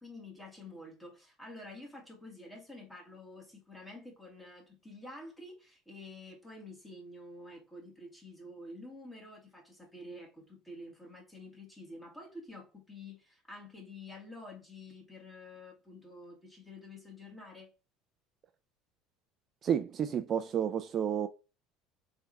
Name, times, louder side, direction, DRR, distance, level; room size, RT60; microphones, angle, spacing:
voice 1, 0.0-17.7, left 2 dB, 10° left, 1.6 m, -49 dB
voice 2, 19.6-21.3, right 8 dB, 35° right, 0.4 m, -31 dB
4.3 x 3.5 x 2.4 m
cardioid pair, 140°, 0 cm